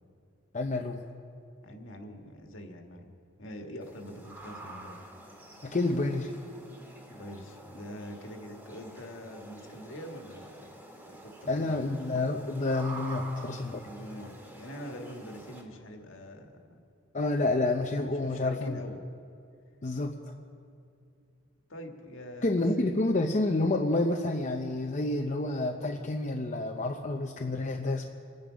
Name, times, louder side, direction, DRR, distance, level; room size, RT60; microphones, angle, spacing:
voice 1, 0.5-1.0 5.6-6.3 11.5-13.8 17.1-18.8 19.8-20.3 22.4-28.0, left 2 dB, 35° left, 2 dB, 0.7 m, -29 dB
voice 2, 1.6-3.1 3.4-5.0 7.1-10.8 11.0-11.9 13.8-16.8 18.2-19.0 21.7-22.9, equal, 60° left, 3 dB, 1.7 m, -44 dB
sound 1, 3.8-15.6, right 2 dB, 10° right, 1.9 m, -48 dB
26.5 x 10.0 x 5.1 m, 2.5 s
head